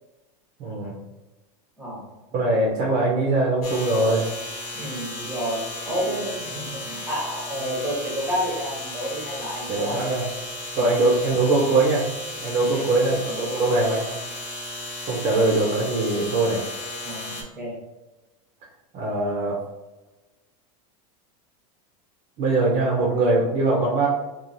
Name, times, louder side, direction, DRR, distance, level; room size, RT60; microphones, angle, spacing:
voice 1, 0.6-0.9 2.3-4.2 9.7-10.2 10.8-12.0 12.4-14.0 15.1-16.6 18.9-19.6 22.4-24.1, right 2 dB, 35° right, -3 dB, 0.6 m, -22 dB
sound 1, 3.6-17.4, left 1 dB, 90° left, 0.9 m, -35 dB
voice 2, 4.7-10.1 10.7-10.9 12.5-12.9 13.3-13.9 17.0-17.8, equal, ahead, -5 dB, 0.8 m, -30 dB
3.0 x 2.4 x 2.5 m, 1.1 s
supercardioid pair, 160°, 19 cm